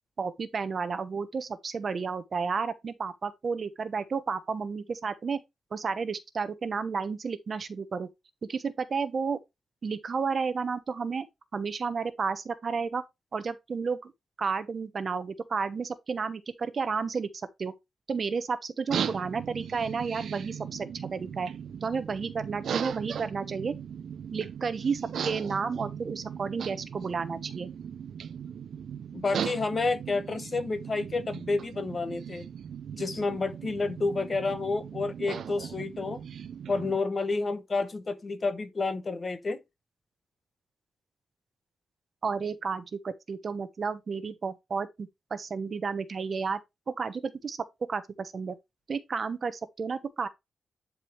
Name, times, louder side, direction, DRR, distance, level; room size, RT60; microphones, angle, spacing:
voice 1, 0.2-5.4 5.7-8.1 8.5-9.4 9.8-11.3 11.5-13.0 13.3-14.1 14.4-17.3 17.6-17.7 18.1-21.5 21.8-23.7 24.3-27.7 42.2-46.6 46.9-47.6 47.9-48.6 48.9-50.3, right 5 dB, 40° right, 0.9 m, -32 dB
sound 1, 18.9-37.0, right 8 dB, 60° right, 0.5 m, -38 dB
voice 2, 29.1-32.5 33.0-36.2 36.7-39.6, left 3 dB, 30° left, 1.0 m, -30 dB
11.0 x 4.8 x 3.3 m
wide cardioid pair, 175°, 0 cm